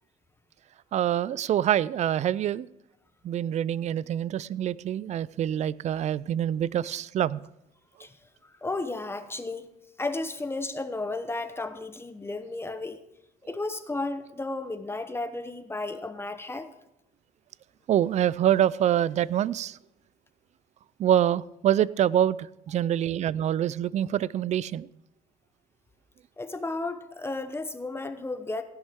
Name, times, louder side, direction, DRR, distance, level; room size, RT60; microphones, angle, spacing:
voice 1, 0.9-2.7 3.2-7.4 17.9-19.8 21.0-24.9, right 11 dB, 45° right, 21 dB, 0.4 m, -25 dB
voice 2, 8.4-9.7 10.0-13.0 13.4-16.7 26.4-28.6, left 2 dB, 15° left, 10 dB, 0.9 m, -33 dB
15.5 x 11.0 x 3.6 m, 0.86 s
cardioid pair, 110°, 17 cm